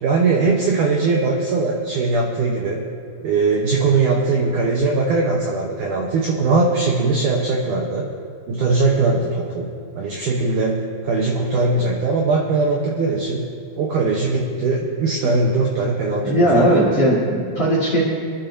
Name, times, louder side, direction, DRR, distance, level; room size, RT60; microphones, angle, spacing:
voice 1, 0.0-2.9 3.2-8.1 8.5-10.8 11.0-13.4 13.8-16.8, right 3 dB, 85° right, -1 dB, 1.8 m, -20 dB
voice 2, 16.2-18.0, right 1 dB, 45° left, -6 dB, 2.1 m, -18 dB
25.0 x 11.5 x 2.7 m, 2.3 s
omnidirectional pair, 5.2 m